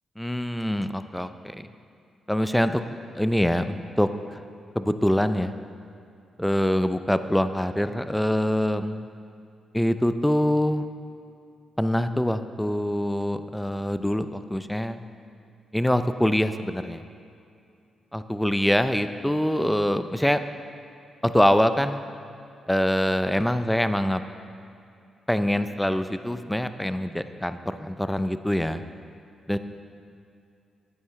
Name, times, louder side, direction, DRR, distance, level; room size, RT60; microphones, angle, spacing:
voice 1, 0.2-1.7 2.3-2.8 3.1-4.4 4.7-5.5 6.4-9.1 9.7-10.8 11.8-15.0 15.7-17.0 18.1-20.4 21.2-22.1 22.7-24.2 25.3-28.8 29.5-29.6, equal, 5° left, 11 dB, 0.5 m, -24 dB
11.5 x 8.2 x 3.2 m, 2.5 s
hypercardioid pair, 45°, 0 cm